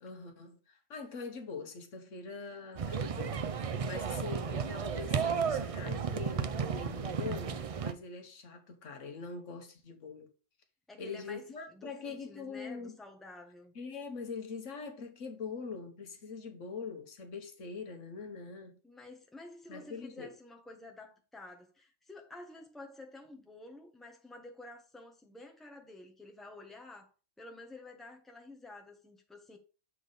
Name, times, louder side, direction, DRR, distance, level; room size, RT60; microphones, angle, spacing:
voice 1, 0.0-10.3 11.0-13.0 13.7-18.8 19.7-20.3, left 4 dB, 75° left, 1.5 m, -43 dB
sound 1, 2.8-7.9, right 6 dB, 60° right, 0.3 m, -33 dB
voice 2, 10.9-11.4 11.7-13.7 18.8-27.1 27.4-29.6, left 2 dB, ahead, 1.2 m, -50 dB
7.5 x 4.0 x 5.1 m
omnidirectional pair, 1.3 m